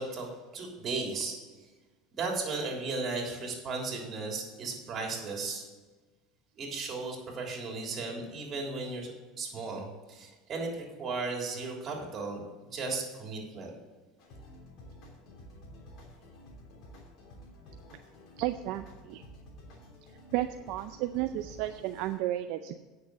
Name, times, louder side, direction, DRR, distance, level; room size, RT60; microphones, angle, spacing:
voice 1, 0.0-1.4 2.1-5.6 6.6-12.4 12.7-13.7, right 3 dB, 40° right, 0 dB, 3.4 m, -35 dB
sound 1, 14.2-22.2, equal, 60° left, 3.0 m, -51 dB
voice 2, 18.4-19.2 20.3-22.8, right 14 dB, 65° right, 8 dB, 0.5 m, -33 dB
9.4 x 6.6 x 7.0 m, 1.3 s
supercardioid pair, 110°, 0 cm